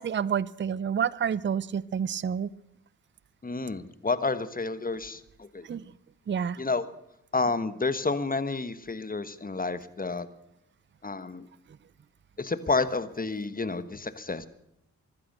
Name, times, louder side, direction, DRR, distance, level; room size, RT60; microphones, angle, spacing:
voice 1, 0.0-2.5 5.7-5.8 6.3-6.6, right 7 dB, 30° right, 21 dB, 0.6 m, -29 dB
voice 2, 3.4-5.7 6.6-6.9 7.3-10.3 11.0-11.5 12.4-14.5, left 3 dB, 25° left, 14 dB, 1.3 m, -30 dB
15.5 x 12.5 x 6.7 m, 0.79 s
supercardioid pair, 45°, 36 cm